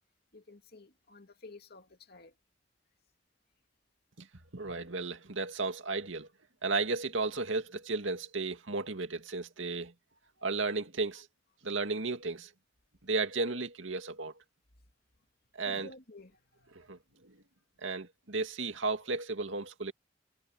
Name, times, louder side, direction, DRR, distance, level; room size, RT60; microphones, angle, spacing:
voice 1, 0.3-2.3 15.6-17.0, left 2 dB, 55° left, 2.6 m, -53 dB
voice 2, 4.5-6.3 6.6-9.9 10.4-11.3 11.6-12.5 13.0-14.3 15.5-15.9 16.7-17.0 17.2-17.3 17.8-19.9, right 3 dB, 80° right, 2.2 m, -34 dB
head